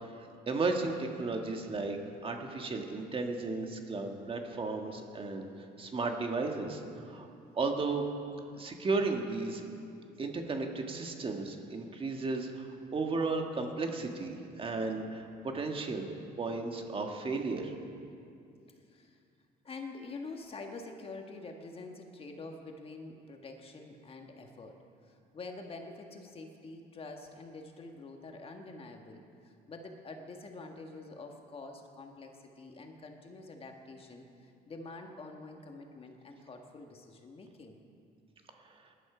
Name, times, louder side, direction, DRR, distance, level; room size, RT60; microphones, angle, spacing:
voice 1, 0.0-2.0 2.2-5.5 5.8-6.8 7.1-7.3 7.5-8.1 8.6-9.6 10.2-16.0 16.4-17.7, right 3 dB, 30° right, 3 dB, 1.6 m, -34 dB
voice 2, 18.8-19.2 19.6-24.7 25.0-37.8, left 3 dB, 35° left, 3 dB, 1.6 m, -46 dB
18.5 x 12.0 x 5.0 m, 2.5 s
cardioid pair, 110°, 17 cm